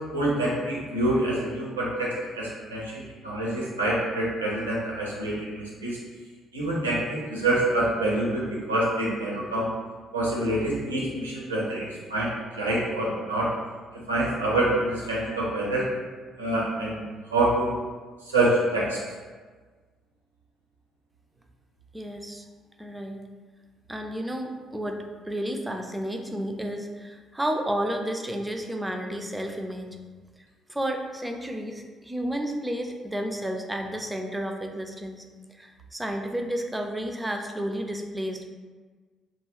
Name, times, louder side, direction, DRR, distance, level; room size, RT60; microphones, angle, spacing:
voice 1, 0.1-5.9 6.5-9.7 10.1-13.5 14.1-15.9 16.4-17.0 17.3-17.7 18.3-19.0, right 1 dB, 85° right, -5 dB, 0.5 m, -26 dB
voice 2, 21.9-22.4 22.8-23.2 23.9-29.9 30.7-35.2 35.5-38.4, right 1 dB, 10° right, 3 dB, 0.4 m, -31 dB
2.4 x 2.3 x 3.1 m, 1.4 s
figure-of-eight pair, 45°, 0 cm